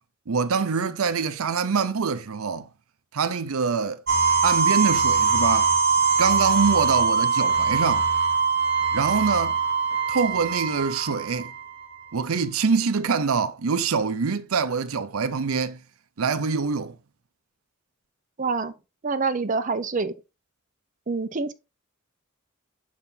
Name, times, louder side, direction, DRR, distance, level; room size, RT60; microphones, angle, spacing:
voice 1, 0.3-2.7 3.1-4.0 4.4-5.7 6.2-8.1 8.9-9.6 10.1-11.5 12.1-15.8 16.2-17.0, right 5 dB, 85° right, 0.6 m, -25 dB
sound 1, 4.1-11.8, right 5 dB, 55° right, 1.5 m, -22 dB
voice 2, 18.4-18.7 19.0-20.1 21.1-21.5, right 4 dB, 40° right, 0.6 m, -26 dB
6.9 x 4.3 x 3.7 m
head